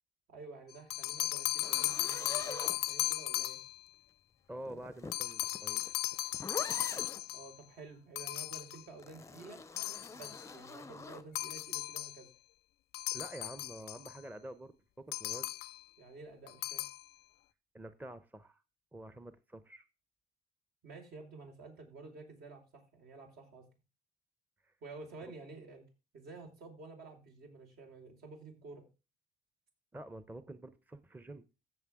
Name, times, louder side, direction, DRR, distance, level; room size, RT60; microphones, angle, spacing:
voice 1, 0.3-3.6 7.3-9.6 10.1-12.3 16.0-16.8 20.8-23.7 24.8-25.9 26.1-28.9, right 3 dB, 70° right, 3 dB, 4.8 m, -51 dB
sound 1, 0.7-3.8 5.1-7.6 8.2-8.9 9.8-10.5 11.4-12.2 12.9-14.2 15.1-15.8 16.5-17.0, left 16 dB, 75° left, 0.5 m, -36 dB
sound 2, 1.6-3.4 4.6-7.3 9.0-11.3, left 4 dB, 15° left, 0.6 m, -45 dB
voice 2, 4.5-5.8 13.1-15.5 17.7-18.6 18.9-19.8 24.6-24.7 29.9-31.4, right 1 dB, 10° right, 12 dB, 0.8 m, -48 dB
15.0 x 7.0 x 3.6 m, 0.30 s
cardioid pair, 110°, 17 cm